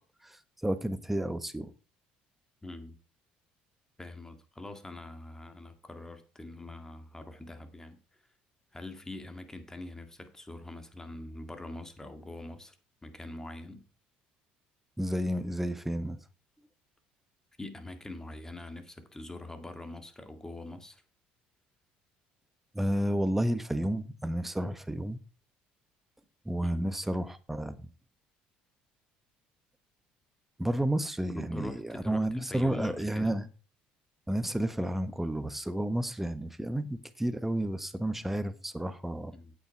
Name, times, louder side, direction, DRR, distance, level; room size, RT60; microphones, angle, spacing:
voice 1, 0.2-1.7 15.0-16.2 22.7-25.2 26.4-27.8 30.6-33.5 34.3-39.3, right 1 dB, 5° right, 1.2 m, -31 dB
voice 2, 2.6-3.0 4.0-8.0 8.7-12.8 13.0-13.8 17.6-21.0 26.6-26.9 31.3-33.4 39.3-39.5, left 2 dB, 15° left, 2.0 m, -43 dB
8.5 x 8.5 x 4.6 m
supercardioid pair, 80°, 4 cm